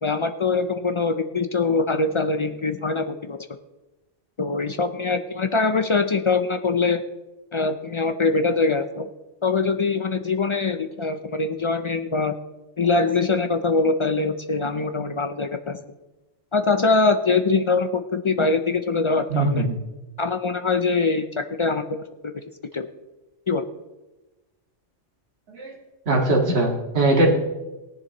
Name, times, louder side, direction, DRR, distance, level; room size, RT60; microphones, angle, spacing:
voice 1, 0.0-3.4 4.4-7.0 7.5-9.0 9.4-12.4 12.8-15.8 16.5-19.7 20.2-22.0 22.3-22.4 22.7-22.9 23.5-23.7, left 3 dB, 55° left, 7 dB, 0.3 m, -23 dB
voice 2, 19.3-19.7 25.5-25.7 26.1-27.3, right 2 dB, 55° right, -3 dB, 2.2 m, -20 dB
18.0 x 10.5 x 3.0 m, 1.1 s
omnidirectional pair, 1.3 m